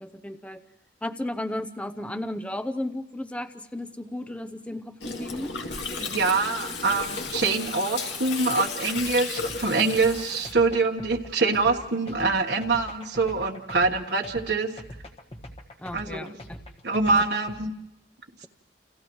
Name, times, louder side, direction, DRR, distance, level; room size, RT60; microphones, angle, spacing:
voice 1, 0.0-0.6 1.0-5.5 15.8-16.6, left 1 dB, 5° left, 8 dB, 0.7 m, -34 dB
Gurgling, 5.0-10.5, left 4 dB, 90° left, 2.7 m, -34 dB
voice 2, 6.0-14.8 15.9-16.3 16.8-17.7, right 3 dB, 65° right, 1 dB, 1.4 m, -25 dB
sound 1, 9.0-17.6, left 1 dB, 35° left, 1.5 m, -43 dB
30.0 x 30.0 x 3.1 m, 0.93 s
head